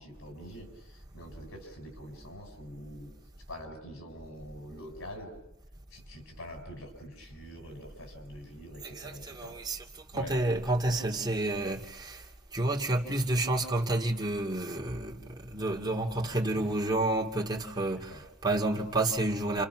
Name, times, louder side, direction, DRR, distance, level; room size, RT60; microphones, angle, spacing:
voice 1, 0.0-3.1 3.5-5.3 5.9-9.6 10.1-10.4 16.1-16.8 18.1-18.2, equal, 85° left, 6.5 m, -45 dB
voice 2, 8.8-19.6, right 2 dB, 20° right, 2.6 m, -30 dB
29.5 x 27.0 x 6.3 m
head